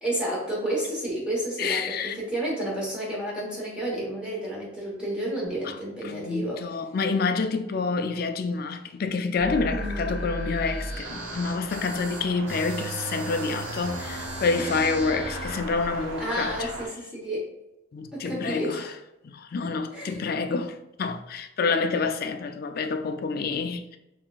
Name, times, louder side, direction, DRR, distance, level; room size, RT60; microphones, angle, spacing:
voice 1, 0.0-6.6 9.7-10.2 14.6-14.8 16.2-17.4 18.1-18.9 19.9-20.2, right 1 dB, 5° right, 1.1 m, -31 dB
voice 2, 1.6-2.2 5.6-5.8 6.0-16.7 17.9-18.8 19.2-24.0, left 4 dB, 50° left, 0.4 m, -28 dB
sound 1, 9.4-15.6, right 1 dB, 65° right, 1.2 m, -35 dB
sound 2, 11.0-16.9, right 2 dB, 80° right, 0.7 m, -38 dB
4.6 x 3.4 x 2.4 m
head